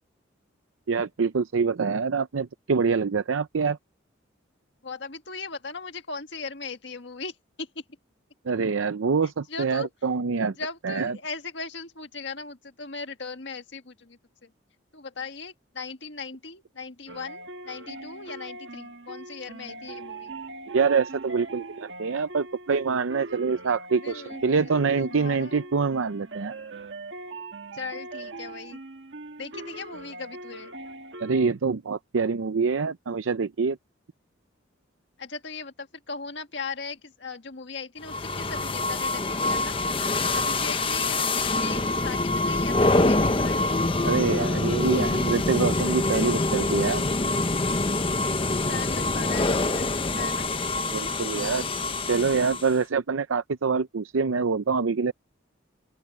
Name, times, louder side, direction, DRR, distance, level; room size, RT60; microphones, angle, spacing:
voice 1, 0.9-3.8 8.5-10.5 10.8-11.2 20.7-26.6 31.2-33.8 44.0-47.0 50.9-51.6 52.0-55.1, right 5 dB, 90° right, 0.6 m, -25 dB
voice 2, 4.8-7.3 7.6-7.7 9.5-9.9 10.6-14.5 14.9-20.3 24.0-25.7 27.7-28.8 29.4-30.7 35.2-39.8 40.3-43.8 47.9-50.5, left 4 dB, 60° left, 1.8 m, -38 dB
sound 1, 17.1-31.5, right 2 dB, 60° right, 1.4 m, -41 dB
sound 2, 38.0-52.8, left 2 dB, 25° left, 0.9 m, -25 dB
open air
head